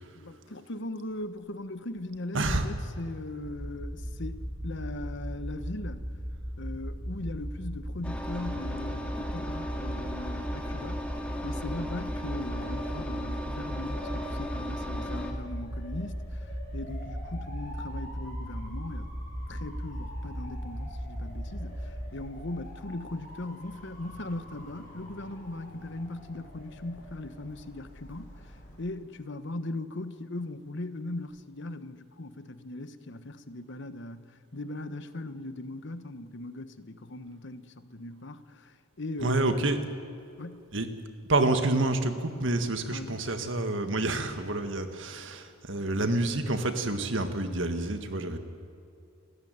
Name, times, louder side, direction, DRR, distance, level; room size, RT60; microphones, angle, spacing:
voice 1, 0.1-6.1 6.6-11.1 11.4-19.1 19.5-39.6 40.4-40.7 42.9-43.2, left 2 dB, 60° left, 11 dB, 1.2 m, -39 dB
voice 2, 2.3-2.8 39.2-39.8 40.7-40.9 41.3-48.4, right 2 dB, 65° right, 8 dB, 1.8 m, -28 dB
sound 1, 3.4-22.1, equal, 25° right, 6.6 m, -37 dB
Engine, 8.0-15.3, equal, 5° left, 2.3 m, -37 dB
Motor vehicle (road) / Siren, 12.5-28.8, equal, 45° left, 6.0 m, -48 dB
29.5 x 14.5 x 9.6 m, 2.5 s
head